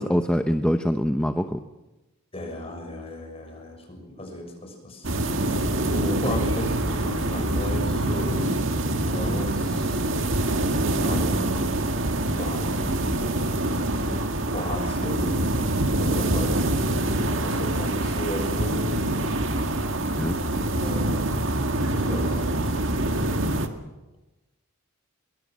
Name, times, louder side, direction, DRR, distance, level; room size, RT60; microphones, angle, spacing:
voice 1, 0.0-1.6 13.9-14.2 20.2-20.4, equal, 5° left, 6 dB, 0.8 m, -24 dB
voice 2, 2.3-5.1 5.5-8.6 8.9-10.0 10.8-11.8 12.4-13.1 13.5-14.1 14.5-15.5 16.0-19.3 20.0-20.1 20.8-21.4 21.9-22.9, left 1 dB, 25° left, 3 dB, 6.5 m, -35 dB
sound 1, 5.0-23.7, right 1 dB, 60° right, 2.0 m, -25 dB
23.0 x 22.5 x 7.6 m, 1.1 s
head